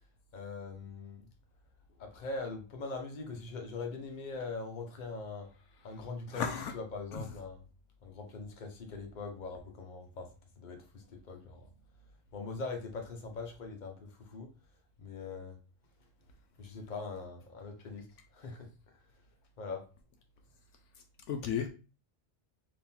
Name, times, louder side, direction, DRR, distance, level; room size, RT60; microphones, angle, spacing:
voice 1, 0.3-1.2 2.0-5.5 5.8-6.4 6.7-7.6 8.0-10.3 10.6-11.7 12.3-14.5 15.0-15.6 16.6-18.1 18.3-18.7 19.6-19.8, left 3 dB, 40° left, 1.0 m, -42 dB
voice 2, 6.3-6.7 7.1-7.2 21.3-21.7, left 7 dB, 75° left, 0.9 m, -33 dB
3.6 x 3.1 x 4.3 m
omnidirectional pair, 1.3 m